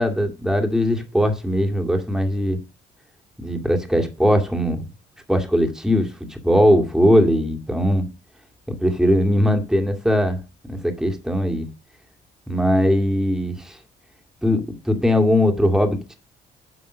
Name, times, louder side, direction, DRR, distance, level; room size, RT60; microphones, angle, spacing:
voice 1, 0.0-2.6 3.4-4.8 5.3-8.1 8.7-10.4 10.7-11.7 12.5-13.8 14.4-16.2, equal, 5° right, 2.2 m, -20 dB
9.6 x 5.5 x 6.2 m
cardioid pair, 90°, 20 cm